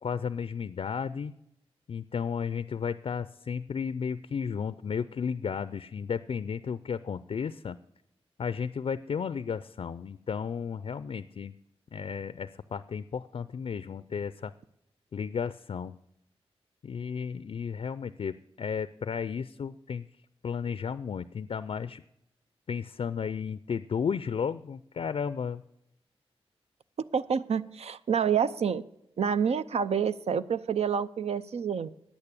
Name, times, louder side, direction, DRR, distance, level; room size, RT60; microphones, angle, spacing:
voice 1, 0.0-1.3 1.9-7.8 8.4-11.5 11.9-14.5 15.1-16.0 16.8-20.1 20.4-22.0 22.7-25.6, left 6 dB, 60° left, 14 dB, 0.4 m, -33 dB
voice 2, 27.1-28.8 29.2-31.9, right 7 dB, 75° right, 15 dB, 0.5 m, -28 dB
10.0 x 8.9 x 8.3 m, 0.83 s
wide cardioid pair, 70°, 11 cm